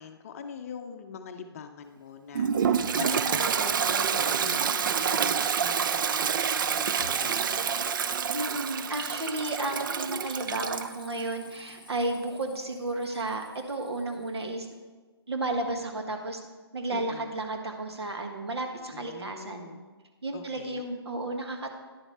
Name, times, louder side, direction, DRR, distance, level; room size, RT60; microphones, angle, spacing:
voice 1, 0.0-7.7 16.9-17.3 18.9-19.8 20.3-20.8, left 6 dB, 35° left, 7 dB, 0.6 m, -42 dB
Toilet flush, 2.4-10.9, right 7 dB, 50° right, 0.4 m, -27 dB
voice 2, 8.3-14.7 15.3-16.4 16.7-19.7 20.2-21.7, right 2 dB, 75° right, 4 dB, 1.5 m, -33 dB
sound 1, 9.6-14.4, left 4 dB, 5° left, 1.2 m, -53 dB
10.5 x 7.0 x 4.2 m, 1.3 s
figure-of-eight pair, 145°, 14 cm